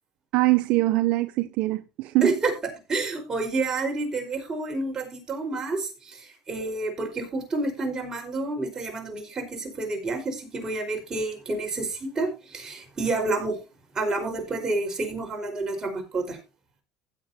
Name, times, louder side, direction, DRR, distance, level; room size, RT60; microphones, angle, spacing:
voice 1, 0.3-2.3, right 20 dB, 70° right, 0.6 m, -23 dB
voice 2, 2.2-2.5 2.9-13.6 13.9-16.4, right 3 dB, 30° right, 4.9 m, -29 dB
16.0 x 8.3 x 2.8 m
supercardioid pair, 95°, 2 cm